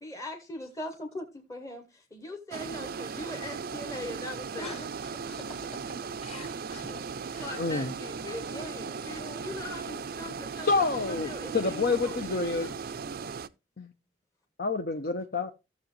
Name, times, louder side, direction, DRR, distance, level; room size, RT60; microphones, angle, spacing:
voice 1, 0.0-4.8 6.3-6.4 7.3-10.7 11.1-12.8, left 1 dB, 15° left, 1.0 m, -41 dB
sound 1, 2.5-13.5, right 5 dB, 55° right, 0.5 m, -37 dB
voice 2, 4.5-5.8 6.2-7.0 7.3-7.6 8.2-9.5, left 2 dB, 35° left, 2.3 m, -46 dB
voice 3, 7.6-7.9 10.6-12.7 13.8-13.9 14.6-15.5, left 3 dB, 50° left, 0.7 m, -28 dB
15.0 x 6.9 x 3.1 m
head